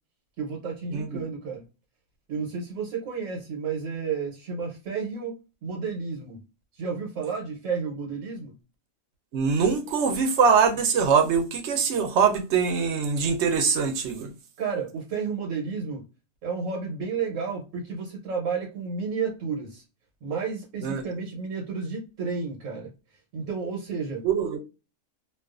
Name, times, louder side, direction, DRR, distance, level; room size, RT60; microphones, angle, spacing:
voice 1, 0.4-1.6 2.3-5.3 5.6-6.4 6.7-8.5 14.6-16.1 16.4-19.8 20.2-22.9 23.3-24.2, right 5 dB, 90° right, 1.2 m, -31 dB
voice 2, 9.3-14.3 20.8-21.0 24.2-24.6, right 6 dB, 65° right, 0.9 m, -23 dB
2.4 x 2.4 x 2.3 m
omnidirectional pair, 1.3 m